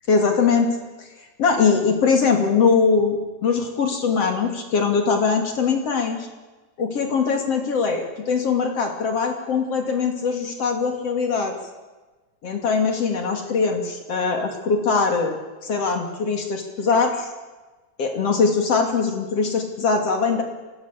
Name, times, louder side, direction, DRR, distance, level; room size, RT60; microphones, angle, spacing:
voice 1, 0.1-0.7 1.0-1.1 1.4-6.3 6.8-11.6 12.4-15.4 15.6-17.3 18.0-20.4, left 5 dB, 55° left, 4 dB, 3.7 m, -21 dB
24.0 x 19.0 x 8.4 m, 1.2 s
omnidirectional pair, 3.4 m